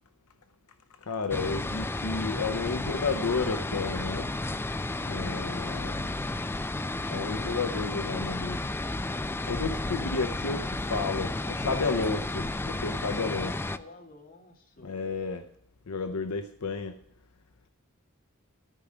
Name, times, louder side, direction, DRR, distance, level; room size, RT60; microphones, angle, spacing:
voice 1, 1.0-4.3 5.1-6.1 7.1-8.6 9.4-13.5 14.8-15.4 15.9-17.0, left 4 dB, 80° left, 0.7 m, -32 dB
sound 1, 1.3-13.8, left 2 dB, 10° left, 0.4 m, -32 dB
voice 2, 13.4-15.2 16.6-16.7, left 2 dB, 40° left, 2.1 m, -55 dB
13.5 x 5.0 x 9.1 m
head